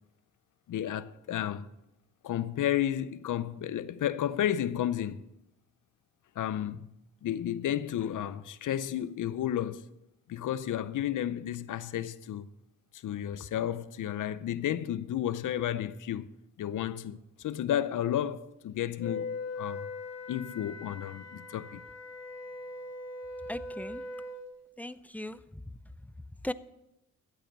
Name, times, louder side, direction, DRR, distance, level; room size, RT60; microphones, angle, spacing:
voice 1, 0.7-1.7 2.2-5.3 6.4-6.9 7.2-9.9 10.3-12.5 12.9-16.3 16.6-19.9 20.3-21.8, left 11 dB, 70° left, 0.7 m, -32 dB
Wind instrument woodwind instrument, 19.0-24.5, left 3 dB, 50° left, 2.2 m, -40 dB
voice 2, 23.5-24.0 24.8-25.4 26.4-26.5, left 1 dB, 5° left, 0.5 m, -37 dB
12.0 x 8.5 x 6.7 m
cardioid pair, 70°, 31 cm